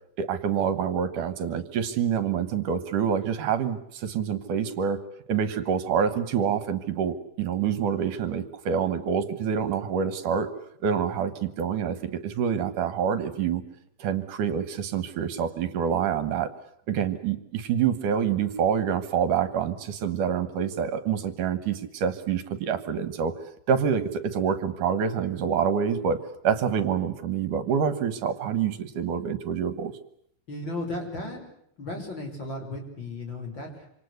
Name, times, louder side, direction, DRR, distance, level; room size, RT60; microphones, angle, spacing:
voice 1, 0.2-5.0 5.3-10.5 10.8-11.3 11.6-13.6 14.0-16.5 16.9-23.3 23.7-26.2 26.4-29.9, right 7 dB, 75° right, 12 dB, 2.8 m, -26 dB
voice 2, 30.5-31.4 31.8-33.9, left 2 dB, 35° left, 2 dB, 6.4 m, -35 dB
27.0 x 26.5 x 8.1 m, 0.67 s
omnidirectional pair, 3.8 m